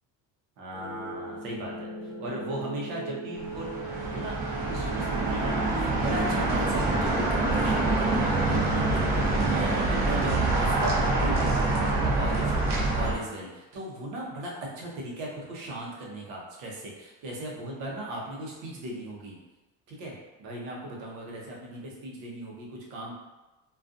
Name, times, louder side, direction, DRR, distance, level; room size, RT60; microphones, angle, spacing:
voice 1, 0.6-3.7 4.1-19.4 19.9-20.1 20.4-23.1, right 1 dB, 85° right, -2 dB, 0.9 m, -37 dB
sound 1, 0.7-11.7, right 1 dB, 5° left, 0.4 m, -42 dB
sound 2, 3.4-13.1, right 2 dB, 45° right, 0.7 m, -26 dB
2.5 x 2.3 x 2.5 m, 1.1 s
cardioid pair, 120°, 46 cm